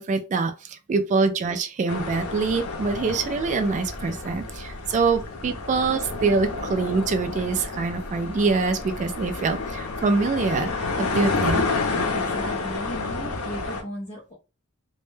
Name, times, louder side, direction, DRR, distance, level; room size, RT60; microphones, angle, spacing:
voice 1, 0.0-11.6, right 4 dB, 35° right, 0.3 m, -25 dB
sound 1, 1.9-13.8, left 3 dB, 75° left, 0.6 m, -30 dB
voice 2, 12.1-14.3, equal, 30° left, 0.6 m, -36 dB
2.1 x 2.1 x 3.1 m
head